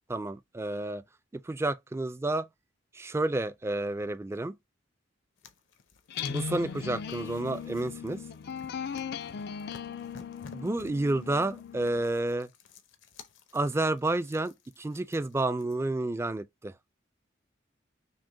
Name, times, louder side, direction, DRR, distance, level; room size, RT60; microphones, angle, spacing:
voice 1, 0.1-1.0 1.3-2.5 2.9-4.6 6.3-8.2 10.5-12.5 13.5-16.7, right 2 dB, 15° right, 0.3 m, -30 dB
sound 1, 5.4-15.9, left 5 dB, 75° left, 0.8 m, -54 dB
sound 2, 6.1-12.0, left 6 dB, 60° left, 0.4 m, -38 dB
6.1 x 2.1 x 3.8 m
head